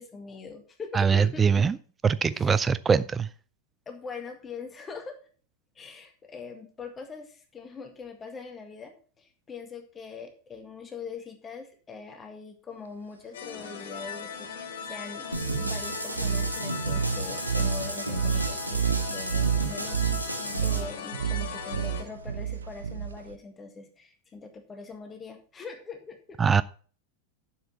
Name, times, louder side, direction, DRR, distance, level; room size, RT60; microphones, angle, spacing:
voice 1, 0.0-1.7 2.3-2.7 3.9-5.2 5.8-20.0 20.6-26.4, left 5 dB, 20° left, 5 dB, 1.8 m, -42 dB
voice 2, 0.9-1.7 2.0-3.3 26.4-26.6, right 6 dB, 15° right, 17 dB, 0.4 m, -22 dB
sound 1, 13.3-22.0, left 6 dB, 60° left, 2.6 m, -39 dB
sound 2, 15.3-20.8, right 1 dB, 90° right, 1.9 m, -34 dB
sound 3, 15.4-23.4, right 7 dB, 70° right, 0.8 m, -30 dB
11.5 x 7.2 x 4.2 m, 0.41 s
figure-of-eight pair, 90°, 0 cm